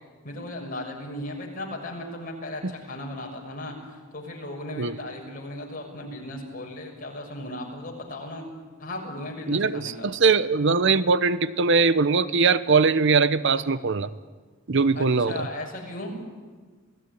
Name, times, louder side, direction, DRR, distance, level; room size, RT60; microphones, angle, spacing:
voice 1, 0.2-3.7 4.1-8.4 8.8-10.1 14.9-16.2, left 1 dB, 45° left, 0 dB, 6.4 m, -36 dB
voice 2, 9.5-14.1 14.7-15.5, right 4 dB, 60° right, 14 dB, 0.8 m, -21 dB
28.0 x 18.0 x 10.0 m, 1.4 s
head